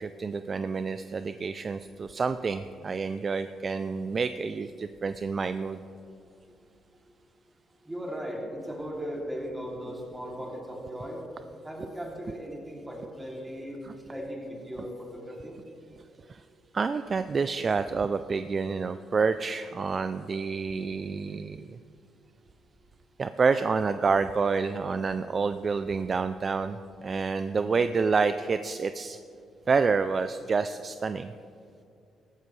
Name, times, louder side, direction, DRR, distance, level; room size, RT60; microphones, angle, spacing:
voice 1, 0.0-5.8 13.8-13.9 16.3-16.4 16.7-21.8 23.2-29.2 29.7-31.3, right 4 dB, 40° right, 11 dB, 0.4 m, -28 dB
voice 2, 7.9-11.2 11.6-13.8 14.1-15.6, equal, 15° right, -2 dB, 2.8 m, -37 dB
15.0 x 12.0 x 3.2 m, 2.5 s
cardioid pair, 90°, 0 cm